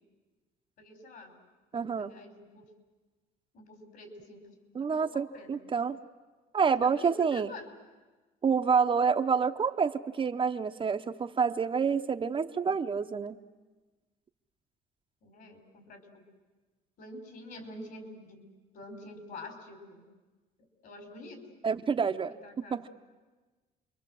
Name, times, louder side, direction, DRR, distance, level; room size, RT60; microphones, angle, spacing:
voice 1, 0.8-1.3 1.7-2.7 3.5-5.6 6.6-7.7 15.2-16.3 17.0-18.5 18.7-20.0 20.8-21.4 22.2-22.8, left 2 dB, 65° left, 5 dB, 5.5 m, -47 dB
voice 2, 1.7-2.1 4.7-6.0 6.5-7.5 8.4-13.4 21.6-22.4 22.7-22.9, right 6 dB, 30° right, 7 dB, 0.8 m, -28 dB
28.5 x 23.5 x 7.7 m, 1.3 s
cardioid pair, 110°, 17 cm